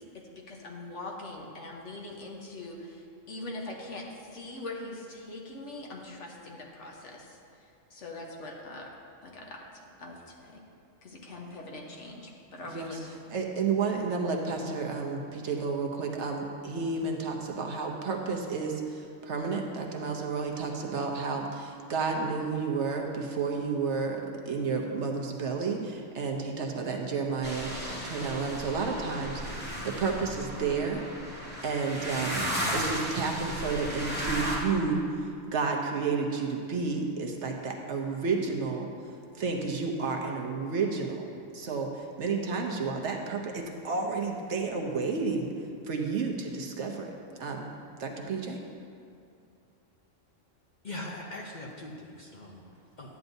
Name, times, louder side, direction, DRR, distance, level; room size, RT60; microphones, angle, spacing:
voice 1, 0.0-9.0 9.2-10.6 11.0-13.1, left 2 dB, 65° left, 0 dB, 1.3 m, -42 dB
voice 2, 12.6-13.0 13.3-24.2 24.5-31.1 31.3-47.7 48.0-48.6, right 4 dB, 65° right, 1 dB, 1.1 m, -31 dB
sound 1, 27.4-34.6, equal, 10° left, 1.5 m, -35 dB
voice 3, 50.8-53.2, left 1 dB, 45° left, -2 dB, 0.7 m, -41 dB
11.0 x 9.2 x 2.6 m, 2.5 s
omnidirectional pair, 1.3 m